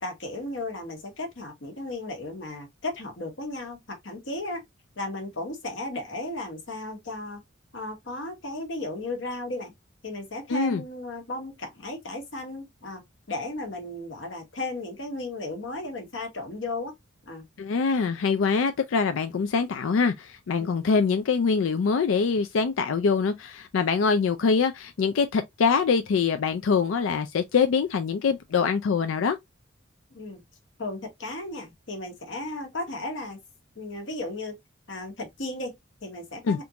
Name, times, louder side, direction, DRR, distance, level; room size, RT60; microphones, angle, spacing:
voice 1, 0.0-4.6 5.0-7.4 7.7-9.7 10.0-13.0 13.3-16.9 17.2-17.5 20.6-20.7 30.1-30.4 30.8-33.4 33.7-34.6 34.9-36.6, left 2 dB, 70° left, 1.2 m, -35 dB
voice 2, 10.5-10.8 17.6-29.4 36.5-36.6, left 5 dB, 90° left, 0.4 m, -24 dB
3.6 x 2.5 x 2.8 m
head